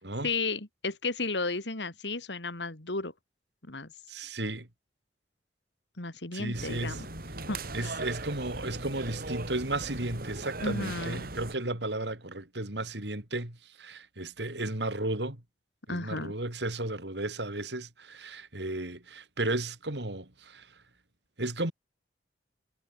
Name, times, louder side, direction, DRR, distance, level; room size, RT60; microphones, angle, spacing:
voice 1, 0.2-3.1 3.7-3.9 6.0-7.1 7.5-8.0 10.6-11.3 15.9-16.3, left 3 dB, 85° left, 3.0 m, -33 dB
voice 2, 4.1-4.7 6.3-7.0 7.7-15.4 15.9-20.7 21.4-21.7, right 2 dB, 75° right, 3.9 m, -34 dB
sound 1, 6.5-11.5, right 2 dB, 60° right, 5.9 m, -39 dB
head